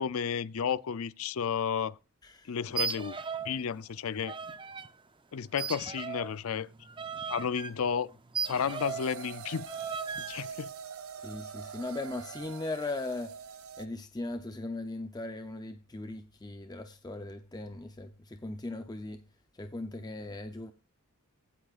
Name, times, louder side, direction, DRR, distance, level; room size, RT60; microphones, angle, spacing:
voice 1, 0.0-2.0 2.5-3.2 3.4-4.3 5.3-6.7 7.3-8.1 8.5-9.7 10.3-10.7, left 7 dB, 70° left, 0.5 m, -32 dB
voice 2, 2.2-2.6 11.2-13.3 13.8-19.2 19.6-20.7, left 2 dB, 20° left, 0.6 m, -38 dB
sound 1, 2.7-3.6 3.8-4.9 5.6-9.1 9.7-10.4, right 6 dB, 25° right, 0.6 m, -37 dB
sound 2, 8.4-13.9, right 7 dB, 75° right, 0.8 m, -44 dB
15.5 x 8.4 x 2.5 m
head